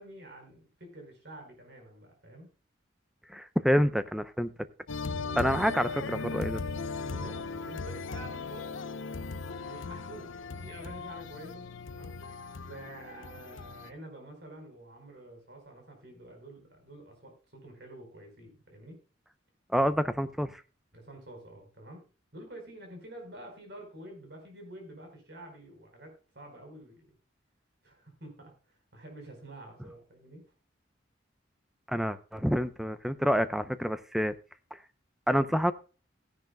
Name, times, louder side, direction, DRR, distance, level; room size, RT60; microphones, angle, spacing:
voice 1, 0.0-2.6 5.2-5.5 7.0-8.9 9.6-12.3 12.6-19.0 20.9-27.1 27.8-30.5, right 1 dB, 60° right, 3 dB, 4.6 m, -48 dB
voice 2, 3.3-4.5 5.4-6.6 19.7-20.6 31.9-34.3 34.7-34.8 35.3-35.7, equal, ahead, 11 dB, 0.6 m, -27 dB
sound 1, 4.9-13.9, left 4 dB, 90° left, 0.7 m, -38 dB
16.5 x 10.5 x 2.3 m, 0.34 s
head